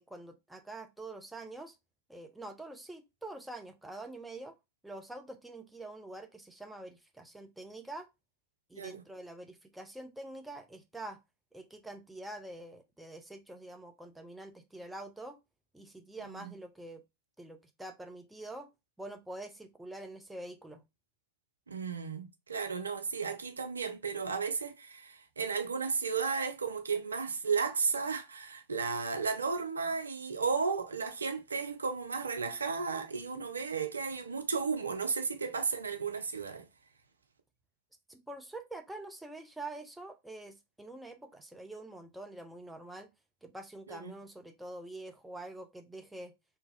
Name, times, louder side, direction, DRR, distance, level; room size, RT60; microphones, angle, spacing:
voice 1, 0.0-1.8 2.1-4.5 4.8-8.1 8.7-11.2 11.5-15.4 15.7-17.0 17.4-18.7 19.0-20.8 38.1-43.1 43.4-46.3, right 2 dB, 5° right, 0.5 m, -46 dB
voice 2, 21.7-36.6 43.9-44.1, right 5 dB, 75° right, 0.4 m, -34 dB
2.7 x 2.3 x 3.1 m
figure-of-eight pair, 90°, 0 cm